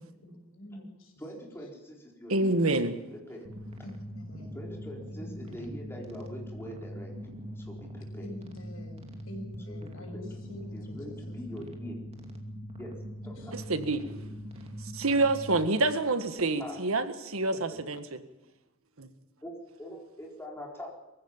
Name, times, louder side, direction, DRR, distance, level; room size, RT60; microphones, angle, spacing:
voice 1, 0.0-1.1 3.8-4.6 5.1-5.8 8.2-11.8 13.4-13.5, left 1 dB, 75° left, 3 dB, 6.1 m, -46 dB
voice 2, 1.2-3.5 4.5-7.2 7.6-8.3 9.7-9.8 10.1-10.3 10.7-12.0 12.8-12.9 13.2-13.5 16.6-16.8 17.7-17.8 19.4-19.5 19.8-20.9, equal, 10° left, -1 dB, 4.4 m, -43 dB
voice 3, 2.3-3.0 13.5-14.0 14.9-18.2 19.0-19.1, right 2 dB, 90° right, 10 dB, 1.7 m, -27 dB
sound 1, 3.4-15.6, equal, 30° right, 2.6 m, -42 dB
23.0 x 15.5 x 7.3 m, 1.0 s
head